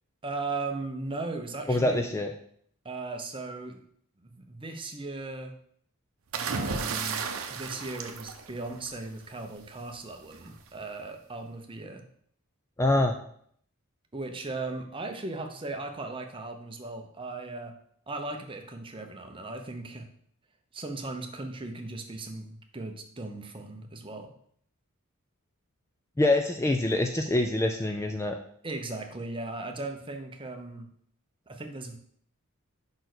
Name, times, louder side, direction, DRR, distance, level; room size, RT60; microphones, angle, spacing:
voice 1, 0.2-2.2 2.8-3.8 4.2-5.5 6.3-12.0 14.1-17.7 18.1-20.1 20.7-24.3 28.6-30.9 31.5-32.0, right 3 dB, 25° right, 5 dB, 0.8 m, -37 dB
voice 2, 1.7-2.3 12.8-13.1 26.2-28.4, left 1 dB, 15° left, 4 dB, 0.3 m, -25 dB
sound 1, 6.3-9.1 10.3-10.6, right 5 dB, 75° right, 0.7 m, -33 dB
5.2 x 4.4 x 6.1 m, 0.65 s
head